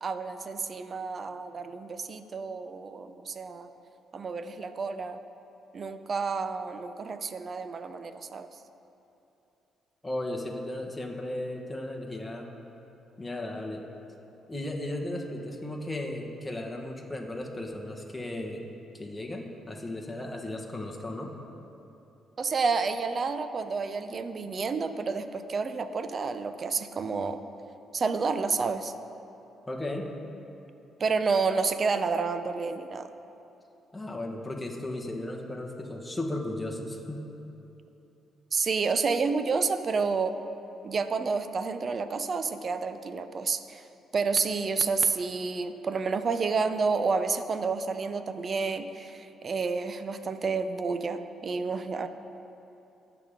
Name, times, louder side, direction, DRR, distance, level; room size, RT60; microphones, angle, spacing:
voice 1, 0.0-3.7 4.1-5.2 5.7-8.5 22.4-27.4 27.9-28.9 31.0-33.1 38.5-40.4 40.8-43.8 44.1-52.1, right 4 dB, 45° right, 10 dB, 0.6 m, -30 dB
voice 2, 10.0-12.5 13.2-13.8 14.5-18.6 18.9-21.3 29.7-30.1 33.9-37.2, left 1 dB, 10° left, 0 dB, 1.4 m, -35 dB
19.0 x 6.9 x 3.7 m, 3.0 s
cardioid pair, 90°, 0 cm